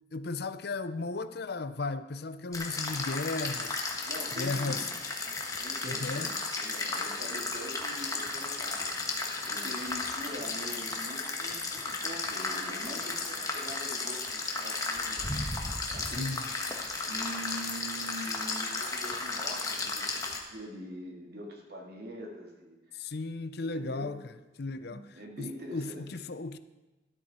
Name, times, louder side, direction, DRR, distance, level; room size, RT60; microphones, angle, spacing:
voice 1, 0.1-4.0 4.3-4.9 5.8-6.3 16.0-16.4 22.9-24.2 24.6-25.1 25.4-26.6, left 3 dB, 55° left, 0.6 m, -35 dB
sound 1, 2.5-20.4, left 3 dB, 20° left, 1.4 m, -34 dB
voice 2, 4.1-4.9 5.6-15.3 15.9-16.5 16.8-23.1 23.7-24.2 24.8-26.1, equal, 55° right, 2.4 m, -44 dB
13.0 x 12.5 x 4.3 m
head